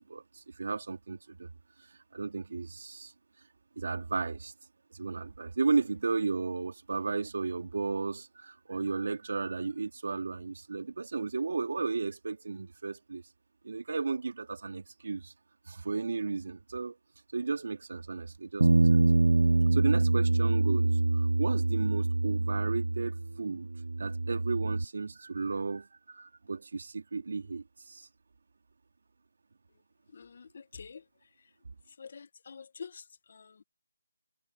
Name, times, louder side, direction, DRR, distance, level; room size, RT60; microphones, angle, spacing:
voice 1, 0.1-1.5 2.1-3.1 3.8-4.5 4.9-13.2 13.6-15.3 15.7-17.0 17.3-19.0 19.7-23.7 24.0-28.1, right 4 dB, 60° right, 2.7 m, -34 dB
Bass guitar, 18.6-23.4 23.7-24.8, right 2 dB, 75° right, 0.9 m, -25 dB
voice 2, 30.1-31.0 32.0-33.0 33.3-33.6, left 6 dB, 45° left, 1.4 m, -47 dB
figure-of-eight pair, 165°, 0 cm